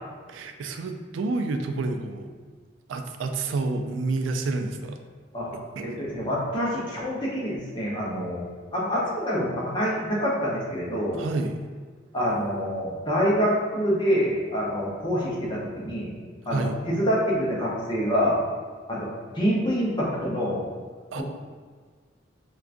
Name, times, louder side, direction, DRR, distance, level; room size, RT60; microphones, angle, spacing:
voice 1, 0.3-2.3 2.9-5.0 5.5-5.9 11.1-11.6 16.5-16.8 21.1-21.2, right 3 dB, 90° right, 5 dB, 0.3 m, -29 dB
voice 2, 5.8-8.4 8.7-11.3 12.1-16.2 16.5-18.4 18.9-19.1 19.3-20.6 21.1-21.2, equal, 25° left, -5 dB, 0.7 m, -26 dB
4.6 x 2.3 x 2.5 m, 1.5 s
head